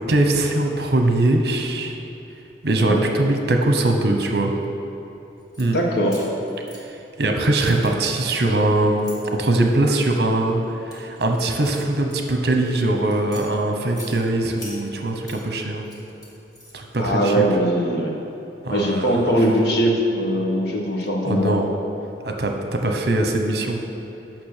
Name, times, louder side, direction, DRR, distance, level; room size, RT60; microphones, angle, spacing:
voice 1, 0.1-2.0 2.6-4.5 5.6-5.8 7.2-9.1 9.4-10.6 10.9-15.8 16.7-17.4 18.6-19.3 21.2-21.7 22.2-23.8, right 2 dB, 60° right, 3 dB, 1.0 m, -21 dB
sound 1, 5.4-5.7 6.1-7.3 7.6-9.2 9.8-10.2 10.6-12.7 13.1-14.1 14.6-15.4 15.8-17.0, left 1 dB, 20° left, 1.9 m, -44 dB
voice 2, 5.7-6.2 17.0-18.1 18.7-21.6, equal, 65° left, -1 dB, 1.5 m, -21 dB
9.3 x 5.9 x 6.7 m, 2.8 s
head